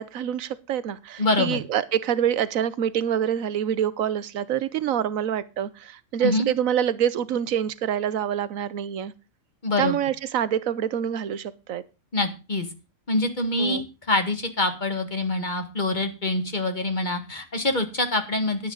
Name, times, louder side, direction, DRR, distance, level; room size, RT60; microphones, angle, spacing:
voice 1, 0.0-9.1 9.8-11.8 13.6-13.8, right 9 dB, 80° right, 17 dB, 1.2 m, -26 dB
voice 2, 1.2-1.6 6.2-6.5 9.6-10.0 12.1-12.7 13.1-18.7, left 2 dB, 35° left, 7 dB, 1.9 m, -25 dB
11.0 x 10.0 x 4.0 m, 0.31 s
omnidirectional pair, 1.4 m